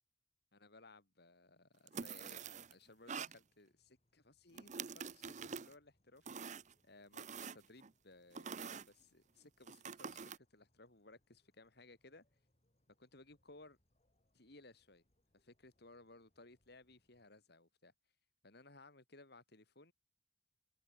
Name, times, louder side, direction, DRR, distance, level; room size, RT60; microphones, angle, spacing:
voice 1, 0.5-2.4 2.7-6.3 6.8-12.2 12.9-13.8 14.3-15.0 15.3-17.9 18.4-19.9, left 2 dB, 60° left, 3.8 m, -61 dB
sound 1, 1.9-2.7 3.1-3.4 4.5-5.7 6.3-6.7 7.1-7.9 8.4-8.9 9.7-10.4, right 6 dB, 40° right, 0.7 m, -46 dB
sound 2, 2.2-17.3, left 1 dB, 35° left, 6.7 m, -82 dB
head